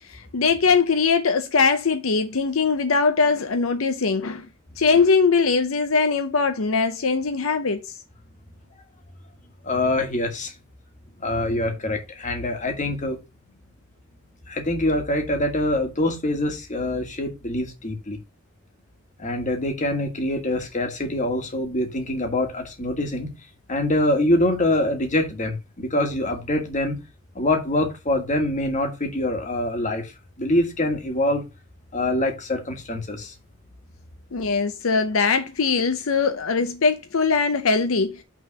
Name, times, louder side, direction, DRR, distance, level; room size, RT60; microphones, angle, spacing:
voice 1, 0.1-4.5 4.8-7.8 34.3-38.2, left 4 dB, 80° left, 0.7 m, -21 dB
voice 2, 9.6-10.5 11.2-13.2 14.5-18.2 19.2-23.3 23.7-27.0 27.4-30.1 30.4-31.5 31.9-33.3, left 1 dB, 35° left, 1.7 m, -24 dB
6.0 x 3.8 x 6.0 m
head